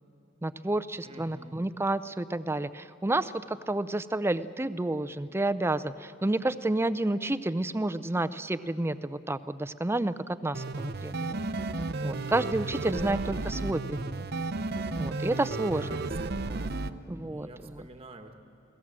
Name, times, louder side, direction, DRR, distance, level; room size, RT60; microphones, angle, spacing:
voice 1, 0.4-11.4 12.0-14.2 15.0-15.9 17.1-17.8, right 2 dB, 10° right, 13 dB, 0.5 m, -30 dB
voice 2, 1.0-1.6 13.0-13.4 15.8-18.3, right 2 dB, 30° right, 6 dB, 1.2 m, -48 dB
sound 1, 10.5-16.9, right 3 dB, 55° right, 0.7 m, -33 dB
30.0 x 18.0 x 7.6 m, 2.7 s
head